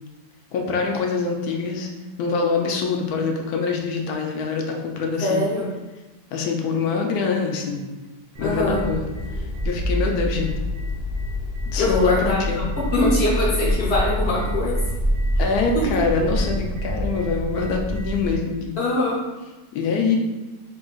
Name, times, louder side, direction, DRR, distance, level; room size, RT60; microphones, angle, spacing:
voice 1, 0.5-1.9 2.2-5.4 6.3-7.9 8.4-9.1 9.3-10.5 11.7-12.7 15.4-18.8 19.7-20.2, left 4 dB, 70° left, 2 dB, 1.0 m, -24 dB
voice 2, 5.2-5.7 8.4-8.8 11.8-12.4 12.8-14.7 15.4-15.5 18.8-19.2, left 2 dB, 50° left, -5 dB, 0.9 m, -22 dB
sound 1, 8.3-18.4, equal, 45° right, 0.5 m, -26 dB
3.8 x 3.7 x 2.3 m, 1.2 s
omnidirectional pair, 1.9 m